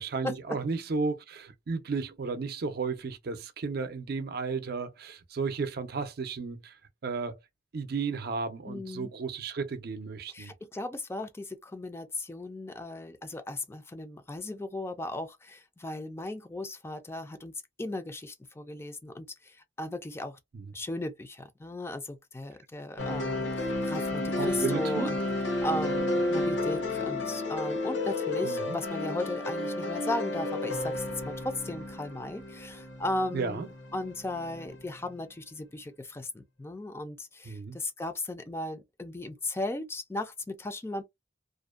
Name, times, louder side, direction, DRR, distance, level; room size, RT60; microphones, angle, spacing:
voice 1, 0.0-6.7 7.0-7.4 7.7-10.5 20.5-20.7 24.4-25.1 28.4-28.9 33.3-33.7 37.5-37.8, right 4 dB, 60° right, 0.5 m, -33 dB
voice 2, 8.6-9.1 10.3-17.5 17.8-20.4 20.7-25.2 25.6-41.0, left 2 dB, 15° left, 0.3 m, -36 dB
sound 1, 23.0-35.1, left 2 dB, 90° left, 0.9 m, -32 dB
2.5 x 2.1 x 2.3 m
head